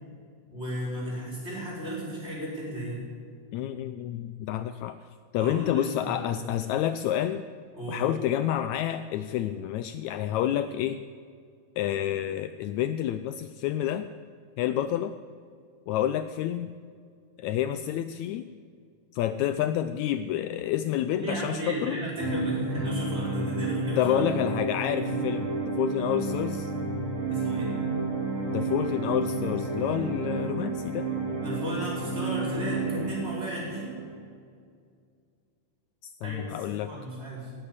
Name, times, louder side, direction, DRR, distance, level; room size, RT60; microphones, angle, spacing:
voice 1, 0.5-3.1 5.4-6.5 7.7-8.0 21.1-24.0 25.0-25.1 27.3-27.7 31.4-33.9 36.2-37.5, equal, 20° right, -4 dB, 5.0 m, -34 dB
voice 2, 3.5-5.0 5.3-7.4 7.9-11.0 11.8-14.1 14.6-15.1 15.9-16.7 17.4-18.5 19.1-22.0 24.0-26.7 28.5-31.1 36.0-36.9, left 11 dB, 80° left, 11 dB, 1.7 m, -29 dB
sound 1, 22.2-34.1, right 3 dB, 80° right, 6.4 m, -31 dB
18.5 x 8.0 x 8.2 m, 2.2 s
omnidirectional pair, 3.7 m